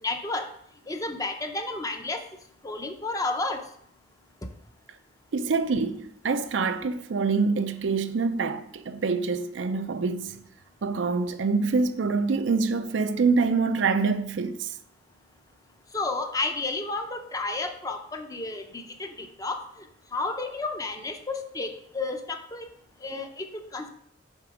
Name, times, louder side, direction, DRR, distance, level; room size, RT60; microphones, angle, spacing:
voice 1, 0.0-0.5 0.9-2.2 2.6-3.6 15.9-19.6 20.1-22.6 23.0-23.9, left 3 dB, 20° left, 0.6 m, -31 dB
voice 2, 5.3-10.4 10.8-14.7, right 4 dB, 80° right, 0.5 m, -25 dB
6.5 x 3.9 x 4.9 m
head